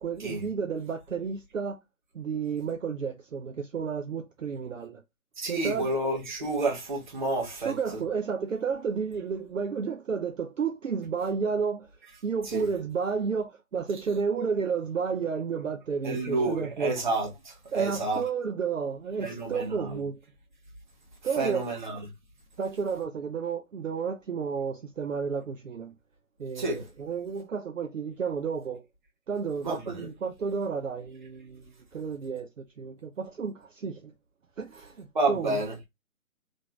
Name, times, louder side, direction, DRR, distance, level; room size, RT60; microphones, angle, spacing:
voice 1, 0.0-1.8 2.1-5.0 5.5-5.9 7.6-11.9 12.2-16.9 17.7-20.2 21.2-21.6 22.6-25.9 26.4-28.9 29.3-31.6 31.9-34.1 34.6-35.6, right 6 dB, 60° right, 0.6 m, -31 dB
voice 2, 5.4-7.7 12.4-12.7 16.0-18.2 19.2-20.0 21.4-22.1 26.5-26.8 29.6-30.1 35.1-35.7, right 2 dB, 30° right, 1.1 m, -30 dB
4.2 x 3.1 x 2.3 m
figure-of-eight pair, 150°, 44 cm